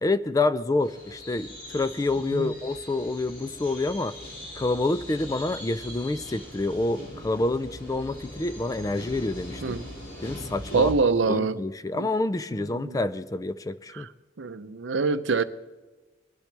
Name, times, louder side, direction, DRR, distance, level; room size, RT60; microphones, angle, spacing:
voice 1, 0.0-4.1 4.6-9.6 10.2-10.9 11.3-14.1, left 2 dB, 20° left, 0.4 m, -27 dB
sound 1, 0.8-10.9, left 1 dB, 70° left, 5.7 m, -41 dB
voice 2, 10.7-11.6 12.0-12.1 12.5-13.0 13.9-14.1 14.4-15.4, right 4 dB, 85° right, 0.6 m, -25 dB
20.5 x 12.0 x 3.3 m
head